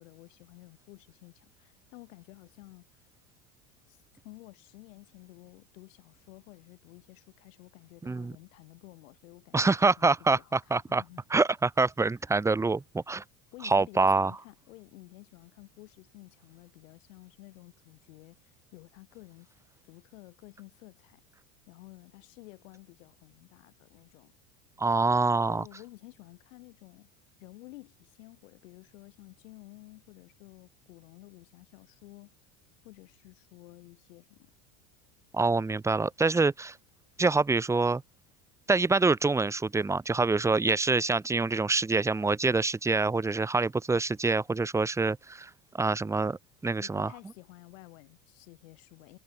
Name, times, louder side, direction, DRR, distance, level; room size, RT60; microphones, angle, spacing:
voice 1, 0.0-2.8 3.9-4.0 4.2-10.1 10.4-10.6 10.9-11.2 13.5-19.5 19.8-21.2 21.7-24.3 25.5-27.1 27.4-32.4 32.8-34.5 46.8-49.2, left 21 dB, 80° left, 7.3 m, -52 dB
voice 2, 8.0-8.3 9.5-11.0 11.3-13.2 13.6-14.3 24.8-25.6 35.3-36.8 37.2-38.0 38.7-45.5 45.8-47.1, right 3 dB, 5° right, 0.9 m, -26 dB
supercardioid pair, 140°, 38 cm